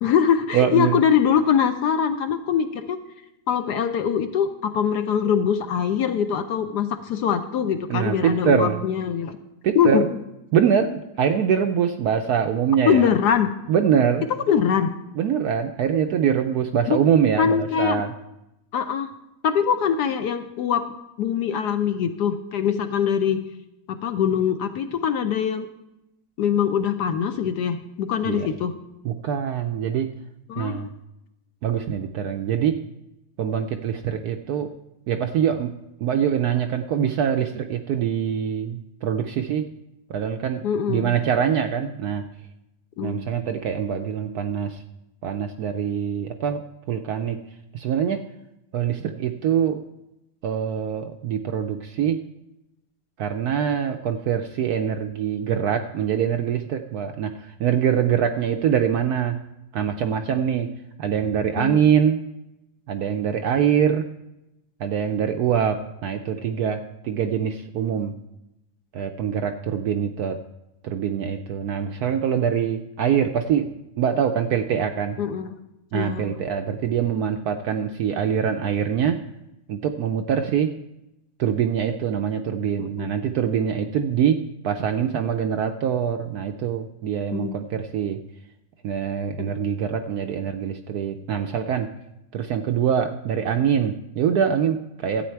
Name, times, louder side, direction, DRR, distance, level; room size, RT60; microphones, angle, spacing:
voice 1, 0.0-3.0 3.5-9.4 9.7-10.0 12.8-13.5 14.5-14.9 16.9-17.0 17.4-18.1 18.7-19.1 19.4-23.4 23.9-25.7 26.4-28.7 30.5-30.9 40.6-41.1 43.0-43.2 61.6-61.8 75.2-75.5 75.9-76.3 82.8-82.9 87.3-87.5 89.4-89.5, left 8 dB, 70° left, 8 dB, 1.1 m, -23 dB
voice 2, 0.5-1.0 7.9-8.8 9.6-10.1 10.5-13.1 13.7-14.2 15.2-18.1 28.3-28.5 29.0-30.1 30.6-30.9 31.6-32.8 33.4-34.7 35.1-39.7 40.1-42.2 43.0-44.8 45.2-47.4 47.7-48.2 48.7-49.8 50.4-52.3 53.2-59.4 59.7-60.7 61.0-62.2 62.9-64.1 64.8-68.2 68.9-70.4 70.8-73.7 74.0-75.2 75.9-79.2 79.7-80.8 81.4-88.2 88.8-91.9 92.3-95.3, right 8 dB, 75° right, 6 dB, 0.9 m, -24 dB
12.5 x 8.6 x 4.5 m, 0.90 s
omnidirectional pair, 2.1 m